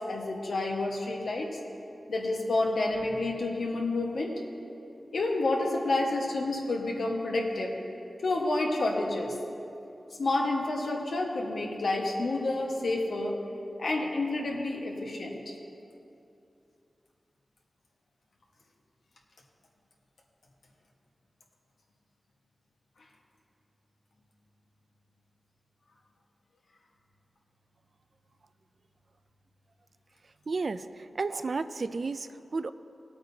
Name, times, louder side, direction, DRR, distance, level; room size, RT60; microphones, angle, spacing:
voice 1, 0.0-1.6 2.1-4.3 5.1-7.8 8.2-9.4 10.2-13.4 13.8-15.5, left 2 dB, 80° left, -1 dB, 1.4 m, -29 dB
voice 2, 30.5-32.7, right 3 dB, 60° right, 12 dB, 0.3 m, -32 dB
18.0 x 8.7 x 2.8 m, 2.7 s
wide cardioid pair, 80°, 0 cm